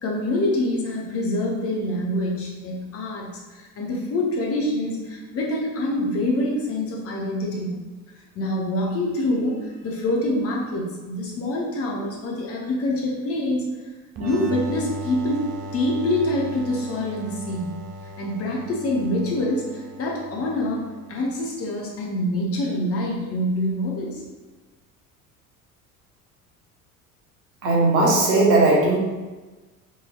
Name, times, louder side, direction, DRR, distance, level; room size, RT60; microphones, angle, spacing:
voice 1, 0.0-7.7 8.3-13.7 14.2-15.5 15.7-17.7 18.2-20.8 21.1-24.2, left 1 dB, 30° left, -2 dB, 0.8 m, -25 dB
sound 1, 14.2-21.6, right 1 dB, 35° right, 0.5 m, -37 dB
voice 2, 27.6-29.0, right 2 dB, 60° right, -3 dB, 1.1 m, -17 dB
4.5 x 3.1 x 2.2 m, 1.2 s
figure-of-eight pair, 65°, 45 cm